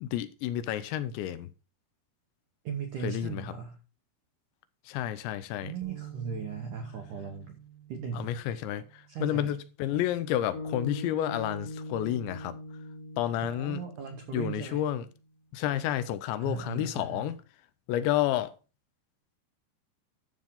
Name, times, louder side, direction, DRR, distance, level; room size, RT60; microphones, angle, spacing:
voice 1, 0.0-1.5 3.0-3.6 4.9-5.8 8.1-12.6 13.2-13.8 14.3-15.1 15.5-17.4 17.9-18.5, left 12 dB, 85° left, 2.9 m, -30 dB
voice 2, 2.7-3.8 5.6-7.6 7.9-8.3 9.1-9.5 13.4-14.8 16.4-17.3, right 6 dB, 80° right, 1.8 m, -37 dB
sound 1, 5.8-10.1 10.6-10.8 11.6-12.1, right 12 dB, 50° right, 0.5 m, -49 dB
sound 2, 10.5-14.9, left 2 dB, 60° left, 1.6 m, -41 dB
11.5 x 7.2 x 3.8 m
omnidirectional pair, 5.2 m